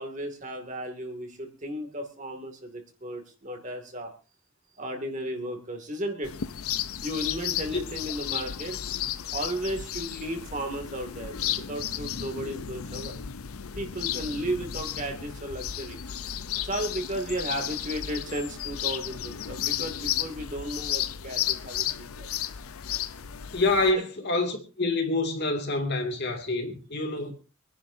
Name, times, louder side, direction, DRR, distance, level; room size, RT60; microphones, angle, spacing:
voice 1, 0.0-4.1 4.8-6.3 7.0-8.8 9.3-13.2 13.8-16.0 16.6-22.3 23.9-24.0 27.1-27.3, right 1 dB, 35° right, 2.3 m, -34 dB
sound 1, 6.2-23.9, left 10 dB, 85° left, 0.7 m, -33 dB
voice 2, 23.5-27.3, left 2 dB, 50° left, 2.4 m, -27 dB
26.0 x 10.5 x 2.7 m
head